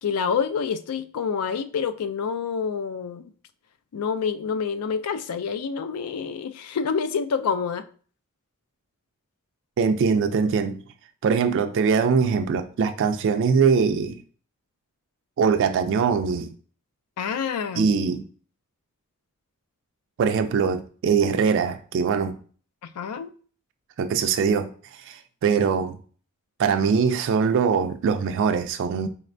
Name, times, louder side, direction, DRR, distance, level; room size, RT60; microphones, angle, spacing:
voice 1, 0.0-3.3 3.9-7.9 17.2-17.9 23.0-23.3, left 6 dB, 85° left, 0.4 m, -27 dB
voice 2, 9.8-10.8 11.2-14.2 15.4-16.5 17.8-18.2 20.2-22.4 24.0-24.7 25.1-26.0 26.6-29.1, right 6 dB, 55° right, 0.3 m, -22 dB
4.1 x 3.2 x 2.5 m
head